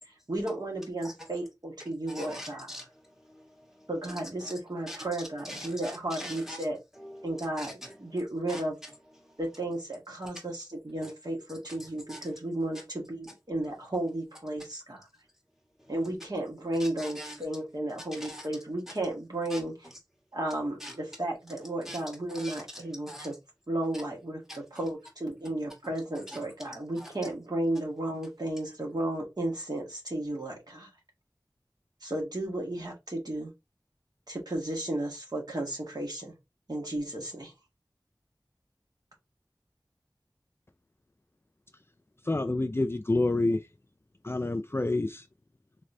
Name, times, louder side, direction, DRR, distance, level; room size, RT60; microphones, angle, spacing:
voice 1, 0.3-2.7 3.9-6.8 7.2-8.8 9.4-15.1 15.9-19.7 20.3-23.3 23.7-30.9 32.0-33.5 34.3-36.3 36.7-37.5, right 1 dB, 60° right, 1.6 m, -34 dB
voice 2, 1.0-1.3 2.1-4.5 4.9-5.1 5.4-6.6 7.0-8.2 8.5-8.6 9.2-9.4 11.0-11.1 11.5-12.3 15.8-15.9 16.8-17.4 18.1-18.5 19.5-19.9 20.8-21.0 21.8-23.3 23.9-24.0 24.5-24.6 26.3-27.1, equal, 5° right, 1.7 m, -44 dB
voice 3, 42.3-43.6 44.2-45.2, left 2 dB, 30° left, 0.4 m, -27 dB
4.0 x 3.1 x 2.7 m
wide cardioid pair, 40°, 8 cm